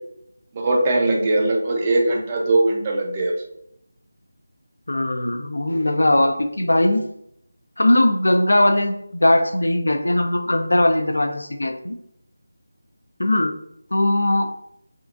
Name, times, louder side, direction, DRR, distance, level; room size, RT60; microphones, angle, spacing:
voice 1, 0.5-3.4, right 2 dB, 25° right, 0 dB, 0.4 m, -20 dB
voice 2, 4.9-7.0 7.8-12.0 13.2-13.5 13.9-14.5, left 1 dB, 90° left, 6 dB, 0.4 m, -19 dB
3.7 x 2.2 x 2.4 m, 0.74 s
figure-of-eight pair, 170°, 0 cm